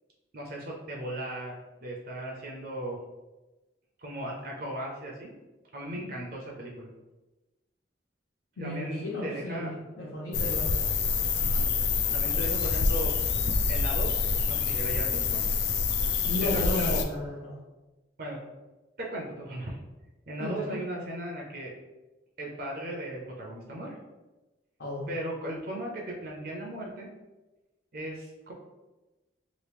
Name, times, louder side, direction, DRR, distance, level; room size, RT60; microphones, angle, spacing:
voice 1, 0.3-3.0 4.0-5.4 5.7-6.9 8.6-9.7 11.3-11.6 12.1-13.1 13.7-15.4 16.4-17.0 18.2-18.4 19.0-19.8 20.3-21.7 22.4-24.0 25.1-27.1 27.9-28.5, right 1 dB, 50° right, -1 dB, 0.5 m, -37 dB
voice 2, 8.6-10.7 16.2-17.6 20.4-20.8 24.8-25.1, left 1 dB, 80° left, -6 dB, 0.7 m, -34 dB
sound 1, 10.3-17.0, left 5 dB, 60° left, 0.3 m, -27 dB
3.0 x 2.4 x 3.3 m, 1.1 s
head